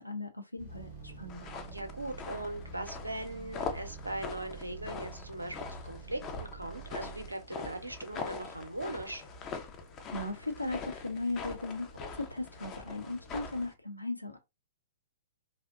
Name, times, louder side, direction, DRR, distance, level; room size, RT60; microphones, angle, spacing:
voice 1, 0.0-1.5 10.1-14.4, left 2 dB, 85° left, 0.6 m, -37 dB
sound 1, 0.6-7.3, right 5 dB, 30° right, 0.5 m, -47 dB
sound 2, 0.7-13.7, left 2 dB, 50° left, 0.8 m, -55 dB
sound 3, 1.3-13.7, left 5 dB, 25° left, 0.4 m, -43 dB
voice 2, 1.7-9.2, right 1 dB, 80° right, 0.6 m, -40 dB
2.6 x 2.1 x 2.3 m
figure-of-eight pair, 115°, 0 cm